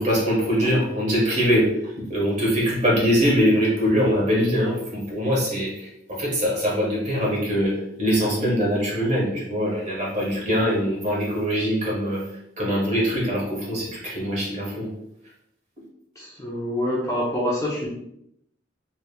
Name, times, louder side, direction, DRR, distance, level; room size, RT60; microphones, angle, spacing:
voice 1, 0.0-1.7 2.1-12.2 12.6-14.9, equal, 35° right, -5 dB, 1.5 m, -23 dB
voice 2, 16.2-17.9, left 1 dB, 15° left, -5 dB, 0.7 m, -26 dB
5.0 x 3.2 x 2.3 m, 0.76 s
head